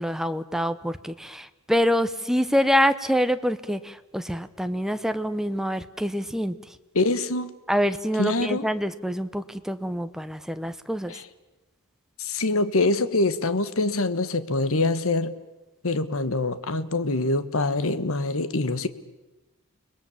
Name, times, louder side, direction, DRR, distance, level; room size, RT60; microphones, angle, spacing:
voice 1, 0.0-6.8 7.7-11.1, equal, ahead, 10 dB, 0.9 m, -26 dB
voice 2, 6.9-7.5 8.2-8.6 11.1-11.2 12.2-15.3 15.8-18.9, left 2 dB, 65° left, 12 dB, 1.4 m, -24 dB
30.0 x 20.5 x 7.3 m, 1.1 s
head